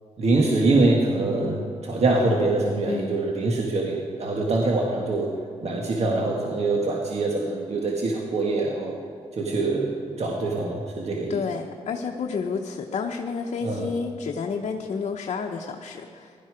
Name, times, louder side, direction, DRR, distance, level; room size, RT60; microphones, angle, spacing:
voice 1, 0.2-5.3 5.6-8.9 9.3-9.9 10.2-11.4 13.6-13.9, right 2 dB, 60° right, -1 dB, 1.7 m, -24 dB
voice 2, 11.3-16.3, left 5 dB, 65° left, 1 dB, 0.9 m, -30 dB
16.0 x 12.0 x 5.0 m, 2.2 s
cardioid pair, 65°, 12 cm